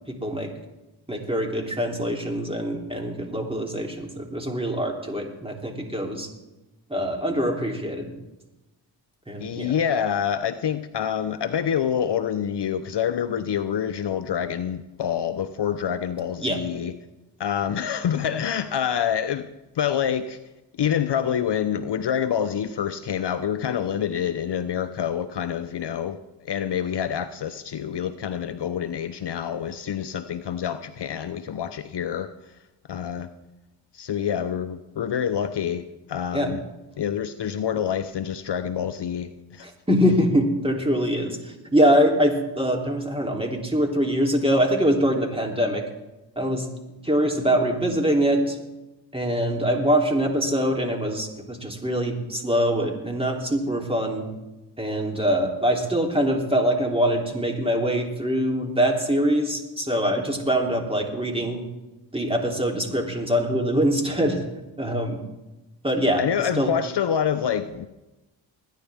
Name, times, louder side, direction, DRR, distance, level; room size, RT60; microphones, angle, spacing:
voice 1, 0.1-0.5 1.1-6.3 6.9-8.1 9.3-9.7 16.4-16.6 36.3-36.5 39.6-45.8 46.3-46.7 47.0-48.6 49.1-54.3 54.8-61.6 62.1-64.4 64.8-65.2 65.8-66.2 66.5-66.7, equal, 10° right, 1 dB, 3.2 m, -23 dB
voice 2, 9.4-17.0 17.4-19.5 19.7-20.4 20.8-32.3 32.9-33.3 33.9-36.6 37.0-39.7 66.2-67.9, left 8 dB, 55° left, 10 dB, 0.8 m, -27 dB
20.5 x 10.0 x 3.6 m, 1.0 s
cardioid pair, 45°, 48 cm